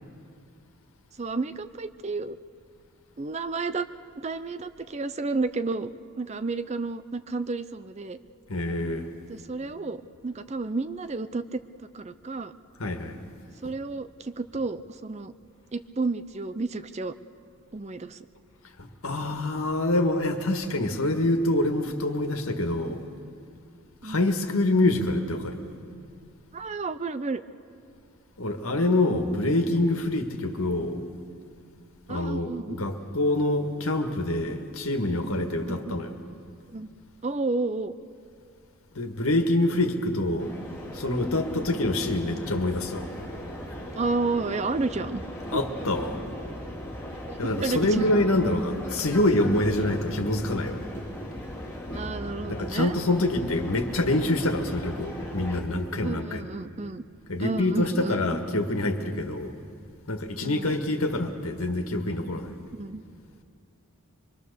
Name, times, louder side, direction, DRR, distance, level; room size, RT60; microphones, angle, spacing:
voice 1, 1.2-2.4 3.2-3.9 4.2-5.9 6.2-8.2 9.3-12.5 13.6-15.3 15.7-17.1 17.7-18.2 24.0-24.3 26.5-27.4 32.1-32.8 35.7-35.9 36.7-36.9 37.2-37.9 41.6-41.8 43.9-45.2 45.5-45.6 47.3-48.0 51.9-53.0 56.0-57.0 57.4-58.2 60.4-60.7 62.8-63.0, right 3 dB, 30° right, 12 dB, 0.5 m, -31 dB
voice 2, 8.5-9.1 12.8-13.2 13.6-13.7 18.8-23.0 24.0-25.6 28.4-31.0 32.1-36.2 38.9-40.5 40.9-43.1 45.5-46.2 47.4-50.8 52.5-56.5 57.3-59.5 60.1-62.5, left 1 dB, 75° left, 5 dB, 1.7 m, -26 dB
sound 1, 40.4-55.6, left 1 dB, 10° left, 2.5 m, -38 dB
24.0 x 23.0 x 6.8 m, 2.4 s
head